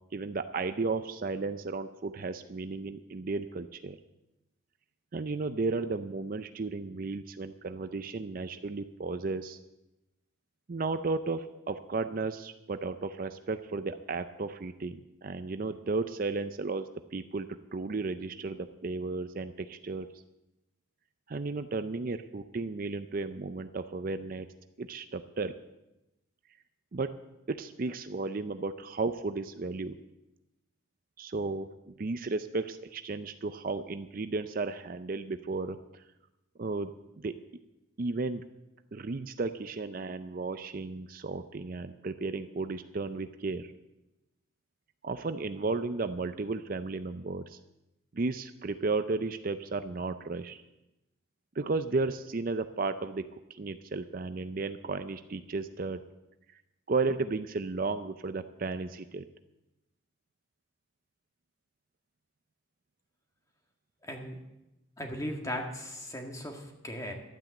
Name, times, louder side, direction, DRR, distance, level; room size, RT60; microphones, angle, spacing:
voice 1, 0.1-4.0 5.1-9.6 10.7-20.1 21.3-24.5 24.8-25.5 26.9-27.2 27.5-30.0 31.2-36.0 36.6-37.4 38.0-38.4 38.9-43.7 45.0-47.6 48.1-50.6 51.6-56.0 56.9-59.2, right 3 dB, 45° right, 10 dB, 0.5 m, -34 dB
voice 2, 64.0-64.4 65.0-67.1, left 1 dB, 15° left, 2 dB, 1.7 m, -37 dB
12.5 x 9.0 x 7.8 m, 0.96 s
head